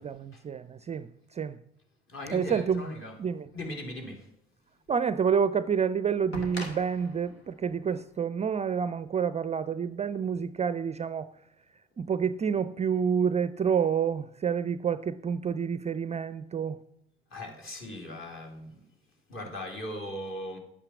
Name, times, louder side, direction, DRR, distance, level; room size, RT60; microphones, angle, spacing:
voice 1, 0.0-1.6 2.3-2.8 3.2-3.5 4.9-11.3 12.0-16.8, right 7 dB, 20° right, 0.4 m, -28 dB
voice 2, 2.1-3.1 3.5-4.3 17.3-18.8 19.3-20.6, left 1 dB, 40° left, 3.4 m, -38 dB
sound 1, 4.9-5.0 6.3-9.2 10.4-10.5, equal, 90° left, 1.9 m, -43 dB
11.0 x 8.7 x 5.9 m
figure-of-eight pair, 60°, 30 cm